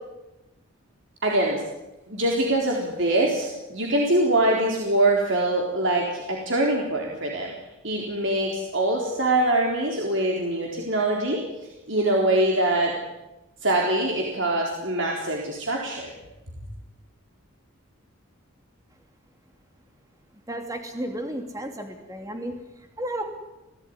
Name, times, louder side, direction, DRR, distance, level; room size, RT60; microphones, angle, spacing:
voice 1, 1.2-1.6 2.1-7.5 7.8-11.4 11.9-13.0 13.6-16.1, right 1 dB, 60° right, 0 dB, 4.0 m, -23 dB
voice 2, 20.5-23.2, right 1 dB, 15° right, 4 dB, 2.8 m, -33 dB
27.0 x 17.5 x 9.8 m, 0.99 s
head